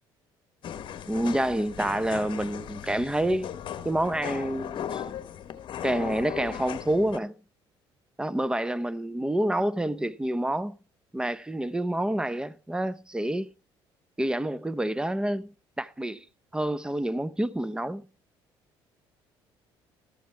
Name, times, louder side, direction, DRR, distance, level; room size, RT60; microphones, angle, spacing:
sound 1, 0.6-7.2, left 9 dB, 55° left, 1.1 m, -37 dB
voice 1, 1.1-3.5 3.8-5.0 5.8-7.3 8.2-10.8 11.1-13.5 14.2-15.5 15.8-16.2 16.5-18.1, right 1 dB, 10° right, 0.7 m, -28 dB
14.0 x 12.5 x 3.3 m
supercardioid pair, 85°, 10 cm